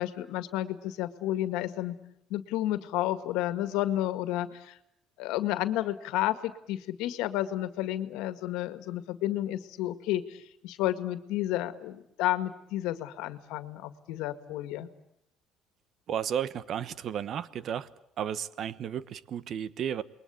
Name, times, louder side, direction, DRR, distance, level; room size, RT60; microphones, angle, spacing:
voice 1, 0.0-2.0 2.3-4.8 5.2-14.9, left 14 dB, 85° left, 1.8 m, -31 dB
voice 2, 16.1-17.9 18.2-20.0, right 9 dB, 55° right, 1.1 m, -33 dB
28.5 x 21.5 x 8.5 m
cardioid pair, 110°, 0 cm